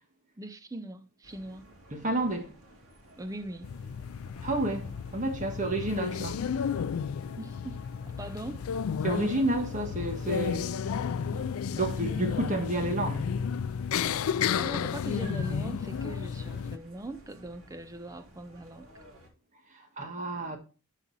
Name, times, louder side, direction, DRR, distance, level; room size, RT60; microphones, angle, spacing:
voice 1, 0.4-1.7 3.2-3.7 7.4-7.8 8.0-8.7 14.0-18.9, right 2 dB, 15° right, 0.6 m, -41 dB
sound 1, 1.2-19.3, equal, 90° right, 2.4 m, -55 dB
voice 2, 1.9-2.5 4.4-6.5 9.0-10.8 11.3-13.4 19.7-20.6, right 1 dB, 35° right, 1.6 m, -30 dB
sound 2, 3.6-16.8, left 7 dB, 90° left, 0.4 m, -32 dB
12.0 x 4.1 x 4.1 m
head